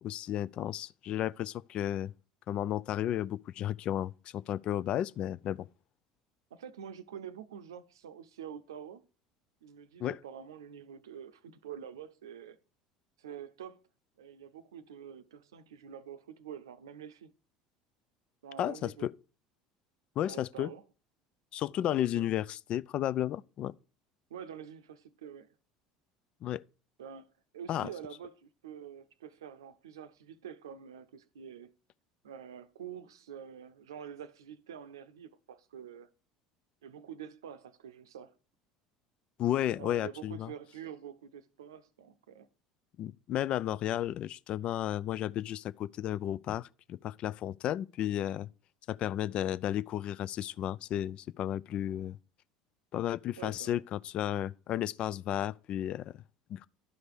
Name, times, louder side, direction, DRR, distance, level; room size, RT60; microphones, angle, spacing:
voice 1, 0.0-2.1 2.5-5.7 10.0-10.2 18.6-19.1 20.2-20.7 21.5-23.7 26.4-26.6 27.7-27.9 39.4-40.5 43.0-48.5 48.9-52.2 52.9-56.1 56.5-56.7, left 11 dB, 50° left, 0.4 m, -33 dB
voice 2, 6.5-9.1 9.6-12.6 13.2-13.8 14.2-17.3 18.4-19.1 20.3-20.8 21.8-22.2 24.3-25.5 27.0-31.7 32.2-36.1 36.8-38.3 39.7-42.5 53.4-53.8, right 8 dB, 80° right, 0.7 m, -47 dB
11.5 x 5.2 x 4.8 m
figure-of-eight pair, 65°, 2 cm